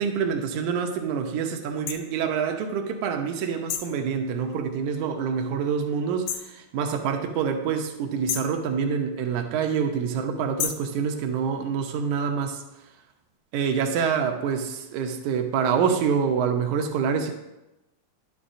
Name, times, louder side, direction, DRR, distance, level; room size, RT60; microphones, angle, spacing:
voice 1, 0.0-12.6 13.5-17.3, right 6 dB, 75° right, 4 dB, 1.8 m, -26 dB
sound 1, 1.9-2.0 3.7-4.0 6.3-6.6 8.3-8.6 10.6-10.9, left 8 dB, 85° left, 2.4 m, -30 dB
11.0 x 7.1 x 2.6 m, 0.95 s
omnidirectional pair, 4.2 m